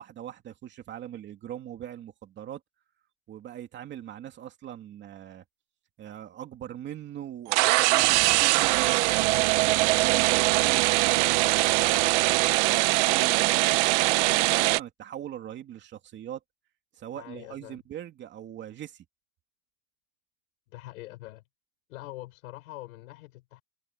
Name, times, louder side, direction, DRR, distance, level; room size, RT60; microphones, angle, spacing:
voice 1, 0.0-2.6 3.3-5.4 6.0-11.7 12.2-16.4 17.0-19.0, right 11 dB, 25° right, 2.7 m, -41 dB
sound 1, 7.5-14.8, right 22 dB, 55° right, 0.7 m, -22 dB
voice 2, 17.1-17.8 20.7-21.4 21.9-23.6, left 18 dB, 90° left, 4.5 m, -44 dB
supercardioid pair, 165°, 41 cm